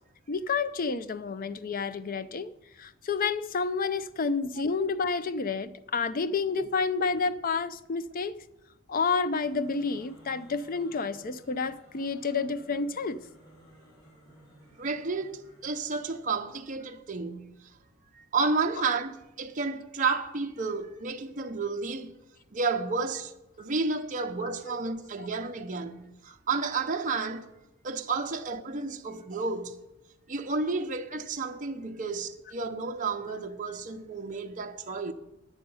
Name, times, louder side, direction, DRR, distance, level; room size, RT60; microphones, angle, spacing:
voice 1, 0.3-2.5 2.8-8.4 8.9-13.2 24.7-24.8 25.2-25.3, left 4 dB, 45° left, 0.5 m, -30 dB
sound 1, 9.2-16.5, equal, 85° left, 4.7 m, -57 dB
voice 2, 14.8-17.5 18.1-22.1 22.5-23.3 23.6-27.5 27.8-29.8 30.3-35.1, right 4 dB, 40° right, 0.7 m, -31 dB
10.5 x 8.9 x 5.5 m
head